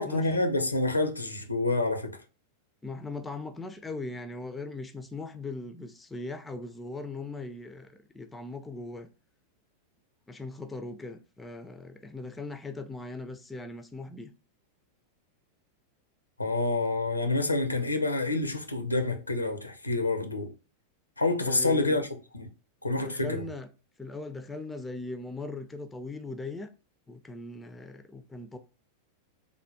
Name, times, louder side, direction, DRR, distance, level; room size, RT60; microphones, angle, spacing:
voice 1, 0.0-2.1 16.4-20.5 21.2-22.1 22.3-22.5 22.8-23.4, left 2 dB, 85° left, 0.4 m, -28 dB
voice 2, 2.8-9.1 10.3-14.3 21.4-22.0 23.0-23.7 24.0-26.7 27.1-28.6, left 3 dB, 10° left, 0.4 m, -39 dB
3.2 x 2.1 x 2.7 m
figure-of-eight pair, 90°, 0 cm